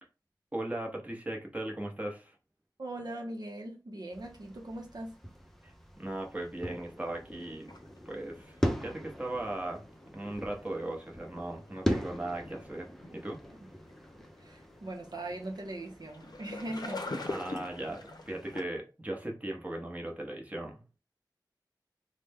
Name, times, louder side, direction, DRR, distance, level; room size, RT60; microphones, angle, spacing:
voice 1, 0.5-2.3 5.6-7.7 8.1-8.6 8.8-9.8 10.1-13.4 17.3-20.8, right 1 dB, 20° right, 0.8 m, -38 dB
voice 2, 2.8-5.2 14.4-17.1, right 1 dB, 65° right, 0.7 m, -40 dB
sound 1, 4.1-18.5, equal, 5° left, 0.5 m, -40 dB
sound 2, 7.7-18.6, left 2 dB, 60° left, 0.6 m, -45 dB
3.2 x 2.1 x 3.4 m
wide cardioid pair, 55°, 8 cm